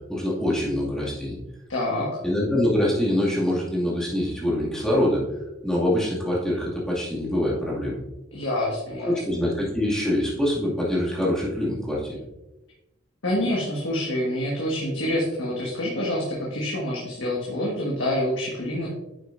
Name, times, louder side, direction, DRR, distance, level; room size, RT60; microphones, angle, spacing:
voice 1, 0.1-1.4 2.2-5.3 5.6-8.0 9.1-12.2, left 1 dB, 5° left, -6 dB, 2.3 m, -24 dB
voice 2, 1.7-2.1 8.3-9.2 13.2-18.9, left 1 dB, 65° left, -4 dB, 1.6 m, -27 dB
9.9 x 6.4 x 2.6 m, 0.98 s
head